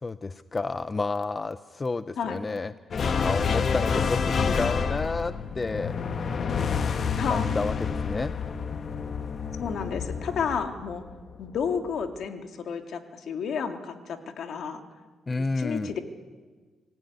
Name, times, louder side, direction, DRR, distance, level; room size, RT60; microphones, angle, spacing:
voice 1, 0.0-2.7 3.2-5.9 7.3-8.3 15.3-15.9, left 3 dB, 25° left, 12 dB, 0.7 m, -30 dB
sound 1, 2.9-11.5, left 5 dB, 50° left, 1.3 m, -28 dB
voice 2, 7.2-7.6 9.6-11.0 11.4-14.8 15.4-16.0, left 6 dB, 65° left, 5 dB, 2.3 m, -31 dB
24.5 x 15.5 x 9.5 m, 1.4 s
cardioid pair, 90°, 0 cm